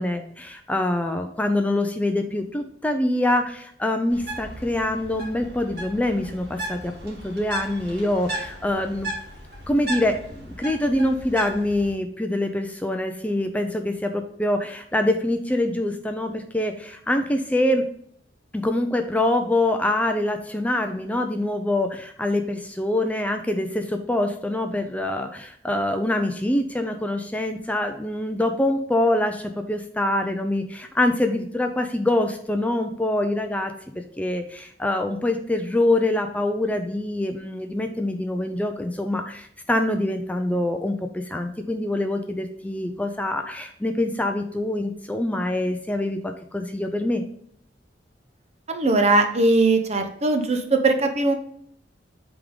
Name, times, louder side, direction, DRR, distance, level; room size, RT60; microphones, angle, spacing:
voice 1, 0.0-9.1 9.7-17.9 18.5-33.7 34.2-47.2, left 1 dB, 10° left, 5 dB, 0.4 m, -25 dB
Bird, 4.1-11.9, right 1 dB, 60° right, 2.1 m, -36 dB
voice 2, 48.7-51.3, right 2 dB, 40° right, 6 dB, 0.8 m, -20 dB
8.1 x 3.6 x 3.7 m, 0.66 s
head